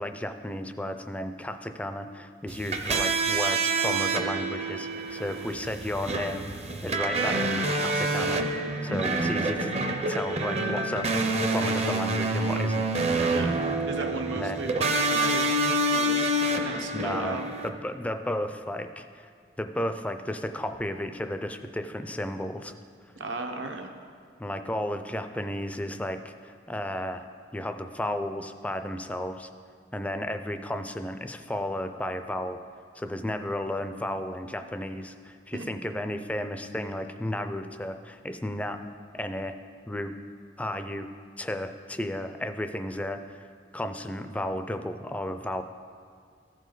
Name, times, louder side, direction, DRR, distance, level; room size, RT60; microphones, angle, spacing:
voice 1, 0.0-9.7 10.1-13.3 14.3-14.6 16.9-19.2 19.6-22.7 24.4-27.3 27.5-29.5 29.9-32.6 33.0-38.8 39.1-39.5 39.9-40.2 40.6-41.1 41.4-43.4 43.7-45.6, left 1 dB, 5° left, 8 dB, 0.3 m, -33 dB
sound 1, 2.5-17.7, right 2 dB, 35° right, 0.6 m, -27 dB
voice 2, 13.9-15.4 15.9-16.3 16.6-17.5 23.2-23.9 35.5-35.7, right 2 dB, 75° right, 3 dB, 0.9 m, -35 dB
15.0 x 5.2 x 3.9 m, 2.1 s
head